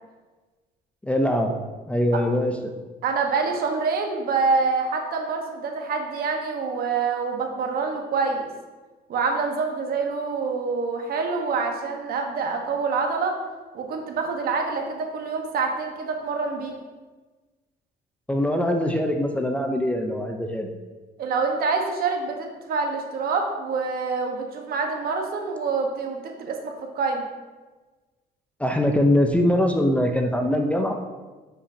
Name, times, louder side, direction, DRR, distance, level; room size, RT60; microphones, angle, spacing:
voice 1, 1.0-1.5 1.9-2.5 18.3-20.7 28.6-30.9, left 1 dB, 5° left, 3 dB, 0.7 m, -22 dB
voice 2, 3.0-8.5 9.1-13.3 13.7-16.7 21.2-27.2, right 4 dB, 60° right, 3 dB, 1.2 m, -26 dB
9.7 x 5.8 x 2.8 m, 1.3 s
cardioid pair, 110°, 17 cm